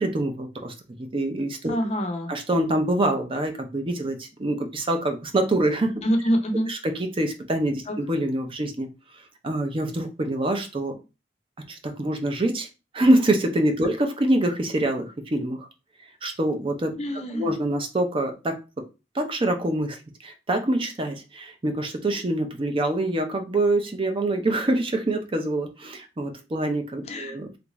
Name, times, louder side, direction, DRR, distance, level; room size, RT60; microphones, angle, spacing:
voice 1, 0.0-1.8 2.3-5.9 6.7-8.9 9.4-10.9 11.7-12.7 12.9-15.7 16.2-16.9 17.3-18.6 19.1-27.6, right 1 dB, 30° right, 5 dB, 0.5 m, -25 dB
voice 2, 1.7-2.3 6.0-6.7 7.9-8.0 17.0-17.5 27.1-27.4, equal, 40° left, 6 dB, 0.6 m, -25 dB
3.4 x 2.5 x 3.0 m, 0.29 s
head